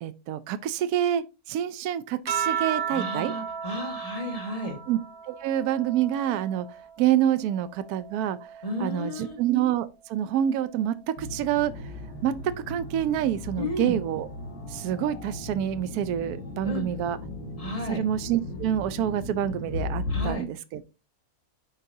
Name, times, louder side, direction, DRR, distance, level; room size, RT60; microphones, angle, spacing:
voice 1, 0.0-3.3 4.9-5.0 5.3-6.7 7.0-8.4 8.8-11.7 12.2-12.3 12.7-14.3 14.7-17.2 17.9-20.9, right 11 dB, 80° right, 1.1 m, -27 dB
sound 1, 2.3-7.1 7.5-9.3 10.4-11.0, right 8 dB, 40° right, 1.2 m, -35 dB
voice 2, 2.9-4.8 8.6-9.4 13.5-14.0 16.6-16.8 17.6-18.0 20.1-20.5, left 1 dB, 25° left, 1.8 m, -32 dB
sound 2, 11.2-20.3, left 2 dB, 75° left, 2.7 m, -36 dB
11.0 x 4.0 x 2.7 m
omnidirectional pair, 1.6 m